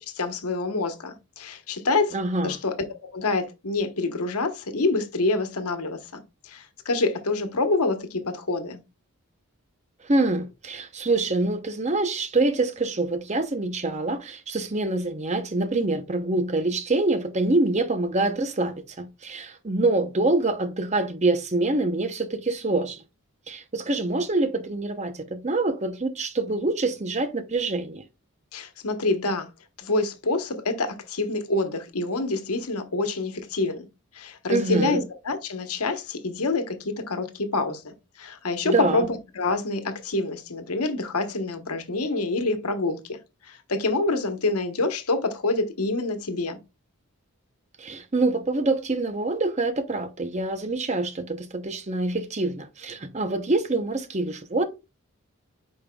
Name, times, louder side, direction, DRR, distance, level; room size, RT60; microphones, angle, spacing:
voice 1, 0.1-2.1 2.4-2.9 3.1-8.8 28.5-29.5 29.8-33.9 34.1-43.2 43.4-46.6, left 3 dB, 85° left, 1.1 m, -27 dB
voice 2, 2.1-2.6 10.0-23.0 23.5-28.0 34.5-35.0 38.6-39.0 47.8-54.7, right 2 dB, 30° right, 0.7 m, -25 dB
8.8 x 5.3 x 2.3 m
head